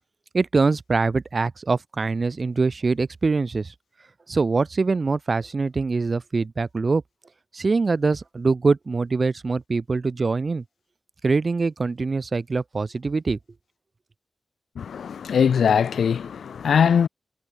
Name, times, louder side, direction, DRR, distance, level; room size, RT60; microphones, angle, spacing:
voice 1, 0.3-3.7 4.3-7.0 7.5-10.6 11.2-13.4, right 4 dB, 50° right, 0.9 m, -23 dB
voice 2, 14.8-17.1, left 7 dB, 90° left, 1.1 m, -21 dB
cardioid pair, 65°, 0 cm